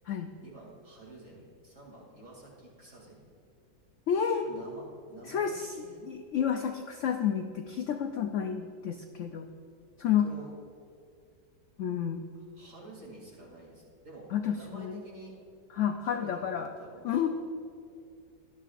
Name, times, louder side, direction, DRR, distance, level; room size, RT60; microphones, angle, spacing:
voice 1, 0.4-3.2 4.4-5.9 10.0-10.5 12.6-15.4 16.0-17.3, right 2 dB, 45° right, -4 dB, 3.2 m, -49 dB
voice 2, 4.1-4.5 5.2-9.5 10.0-10.3 11.8-12.2 14.3-15.0 15.7-16.7 17.0-17.3, left 8 dB, 70° left, 5 dB, 0.7 m, -30 dB
18.0 x 12.0 x 2.5 m, 2.3 s
omnidirectional pair, 1.8 m